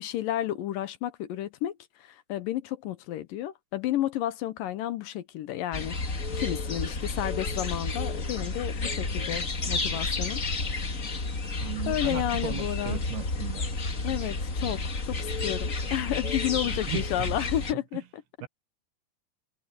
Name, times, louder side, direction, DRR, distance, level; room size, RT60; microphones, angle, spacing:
voice 1, 0.0-10.4 11.9-13.0 14.0-18.2, left 13 dB, 75° left, 2.4 m, -32 dB
sound 1, 5.7-17.7, left 3 dB, 40° left, 1.2 m, -31 dB
voice 2, 11.6-13.7 16.6-17.3 18.4-18.5, right 13 dB, 85° right, 3.4 m, -36 dB
omnidirectional pair, 4.3 m